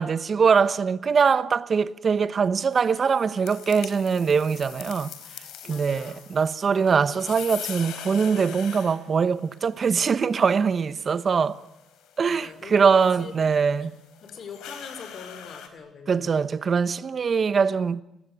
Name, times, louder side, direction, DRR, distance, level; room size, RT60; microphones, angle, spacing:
voice 1, 0.0-5.1 5.7-11.6 12.2-13.9 16.1-18.0, right 6 dB, 45° right, 1.1 m, -22 dB
sound 1, 2.7-15.7, left 9 dB, 90° left, 4.2 m, -43 dB
voice 2, 5.6-6.2 12.2-13.9 14.2-16.3, left 5 dB, 55° left, 4.7 m, -43 dB
29.0 x 19.0 x 9.5 m
cardioid pair, 90°, 0 cm